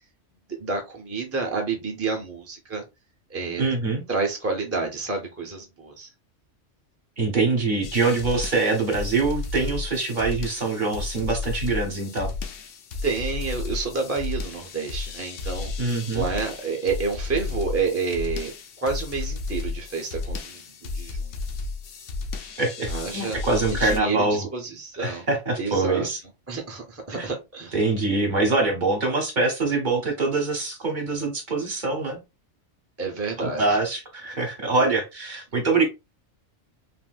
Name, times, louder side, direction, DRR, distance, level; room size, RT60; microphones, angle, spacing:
voice 1, 0.6-2.8 3.3-3.6 4.1-6.1 13.0-15.7 16.1-18.5 18.8-21.4 22.9-23.4 23.7-25.2 25.6-26.1 26.5-27.8 33.0-33.8, right 4 dB, 15° right, 0.5 m, -29 dB
voice 2, 3.6-4.0 7.2-12.3 15.8-16.3 22.6-24.5 25.0-26.2 27.1-27.3 27.7-32.2 33.4-35.8, right 3 dB, 45° right, 0.9 m, -24 dB
sound 1, 7.8-24.0, left 4 dB, 80° left, 1.0 m, -33 dB
3.4 x 2.6 x 2.3 m
omnidirectional pair, 1.3 m